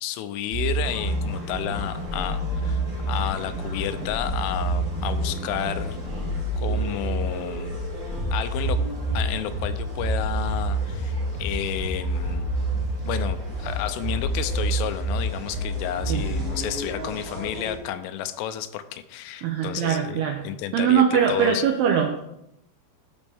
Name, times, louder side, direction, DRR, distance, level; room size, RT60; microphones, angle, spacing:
voice 1, 0.0-6.0 6.5-7.8 8.3-8.8 9.1-12.5 13.0-21.0 21.3-21.6, left 11 dB, 85° left, 10 dB, 3.2 m, -31 dB
sound 1, 0.5-16.5, right 2 dB, 60° right, 2.1 m, -28 dB
sound 2, 0.8-17.8, equal, 20° right, 2.3 m, -34 dB
voice 2, 19.4-20.4 20.7-22.2, right 8 dB, 85° right, 2 dB, 2.2 m, -22 dB
14.5 x 5.3 x 3.4 m, 0.82 s
omnidirectional pair, 5.6 m